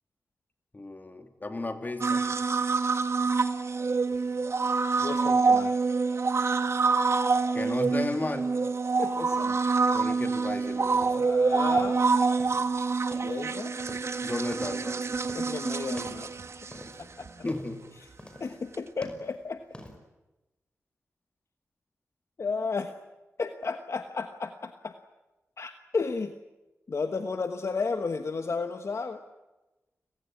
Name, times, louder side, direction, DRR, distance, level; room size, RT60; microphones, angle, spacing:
voice 1, 0.7-2.3 7.5-8.5 9.9-11.3 14.2-15.2 17.4-17.9, left 2 dB, 35° left, 7 dB, 3.1 m, -34 dB
sound 1, 2.0-17.3 18.7-18.8, right 4 dB, 60° right, 1.4 m, -26 dB
voice 2, 5.0-5.8 9.0-9.6 11.1-12.0 13.2-13.7 15.3-16.3 17.0-17.3 18.4-19.6 22.4-22.9 23.4-24.9 25.6-26.3 26.9-29.2, left 4 dB, 60° left, 8 dB, 1.3 m, -33 dB
sound 2, 10.2-19.9, left 1 dB, 20° left, 5.3 m, -48 dB
29.5 x 17.0 x 9.7 m, 1.1 s
cardioid pair, 65°, 5 cm